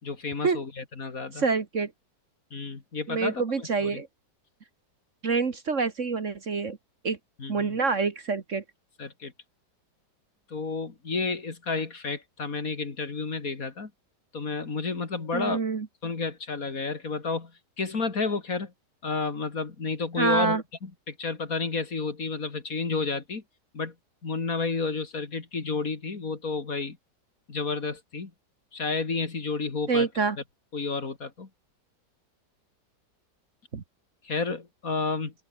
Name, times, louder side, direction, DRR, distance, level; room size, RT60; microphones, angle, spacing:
voice 1, 0.0-1.4 2.5-4.0 7.4-7.8 9.0-9.3 10.5-13.9 14.3-15.6 16.0-17.5 17.8-18.7 19.0-23.4 23.7-23.9 24.2-27.0 27.5-28.3 28.7-30.1 30.7-31.5 34.2-35.3, left 4 dB, 50° left, 2.9 m, -31 dB
voice 2, 1.3-1.9 3.1-4.1 5.2-6.8 7.0-7.2 7.5-8.6 15.3-15.9 20.2-20.6 29.9-30.4 33.7-33.8, right 4 dB, 45° right, 1.8 m, -26 dB
open air
omnidirectional pair, 1.9 m